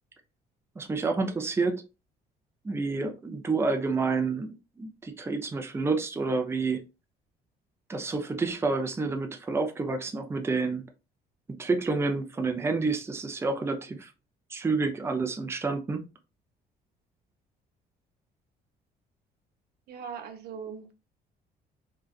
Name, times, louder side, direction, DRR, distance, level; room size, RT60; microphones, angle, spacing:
voice 1, 0.8-1.8 2.6-6.8 7.9-10.8 11.6-14.1 14.5-16.0, right 3 dB, 15° right, 0.5 m, -29 dB
voice 2, 19.9-20.9, right 7 dB, 70° right, 0.7 m, -40 dB
3.9 x 2.3 x 2.4 m
cardioid pair, 110°, 17 cm